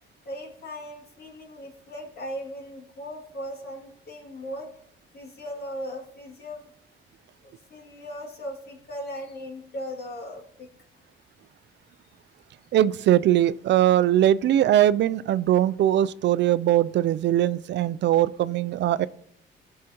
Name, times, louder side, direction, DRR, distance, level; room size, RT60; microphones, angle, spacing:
voice 1, 0.2-4.7 5.1-6.6 7.4-10.7, equal, 55° left, 0 dB, 2.4 m, -38 dB
voice 2, 12.7-19.1, right 12 dB, 65° right, 17 dB, 0.4 m, -21 dB
15.0 x 6.5 x 2.9 m, 0.66 s
cardioid pair, 90°, 20 cm